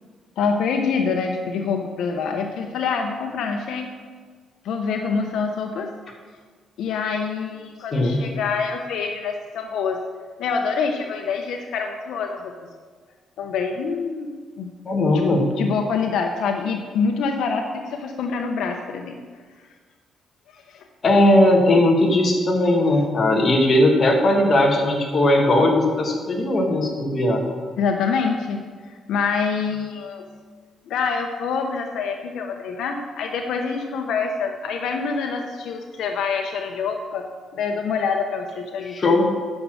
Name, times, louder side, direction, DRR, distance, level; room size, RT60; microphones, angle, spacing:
voice 1, 0.4-3.9 4.6-5.9 6.8-10.0 10.4-12.5 13.4-14.3 14.6-14.7 15.3-19.2 20.5-20.8 27.8-28.6 28.9-30.2 30.9-37.3 37.5-39.0, left 5 dB, 80° left, 4 dB, 0.8 m, -26 dB
voice 2, 14.8-15.5 21.0-27.5 38.9-39.2, left 1 dB, 30° left, 0 dB, 1.6 m, -18 dB
9.7 x 6.4 x 6.3 m, 1.5 s
cardioid pair, 165°, 0 cm